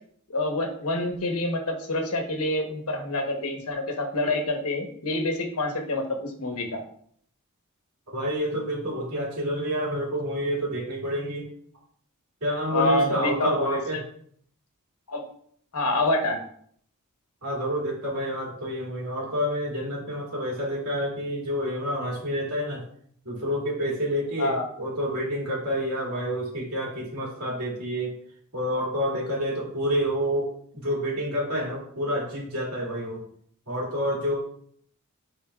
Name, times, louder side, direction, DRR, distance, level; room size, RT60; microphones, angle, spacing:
voice 1, 0.3-6.8 12.7-13.8 15.1-15.2 15.7-16.4 24.4-24.7, left 2 dB, 80° left, 4 dB, 1.2 m, -27 dB
voice 2, 8.1-11.5 12.4-14.0 17.4-22.8 23.3-28.1 28.5-33.2 33.7-34.3, equal, 85° right, -3 dB, 2.5 m, -28 dB
9.4 x 4.3 x 2.4 m, 0.63 s
head